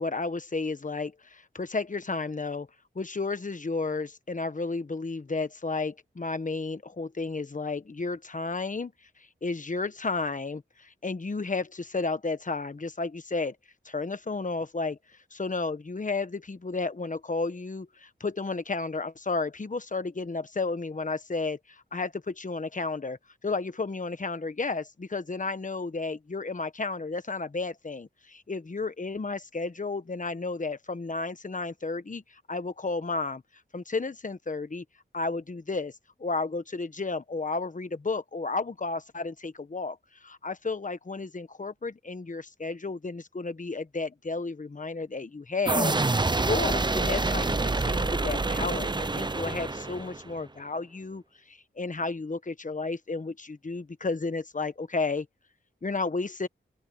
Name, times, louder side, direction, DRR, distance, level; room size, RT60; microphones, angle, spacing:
voice 1, 0.0-2.7 2.9-8.9 9.4-13.5 13.8-15.0 15.3-23.2 23.4-32.2 32.5-33.4 33.7-34.8 35.1-35.9 36.2-51.2 51.5-55.3 55.8-56.5, left 3 dB, 40° left, 1.2 m, -32 dB
sound 1, 45.7-50.3, right 3 dB, 20° right, 0.6 m, -27 dB
open air
wide cardioid pair, 75°, 20 cm